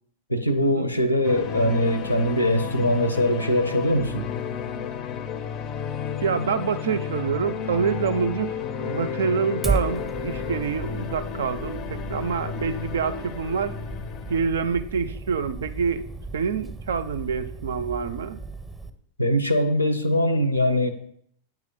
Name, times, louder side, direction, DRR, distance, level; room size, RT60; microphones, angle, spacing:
voice 1, 0.3-4.2 19.2-20.9, equal, 85° left, 11 dB, 0.6 m, -22 dB
sound 1, 1.2-14.5, left 7 dB, 35° left, 0.5 m, -32 dB
voice 2, 6.2-13.8 14.3-16.1 16.3-18.4, right 6 dB, 65° right, 12 dB, 0.4 m, -27 dB
Fire, 9.6-18.9, right 3 dB, 5° right, 0.6 m, -34 dB
8.9 x 3.0 x 3.8 m, 0.65 s
figure-of-eight pair, 90°, 0 cm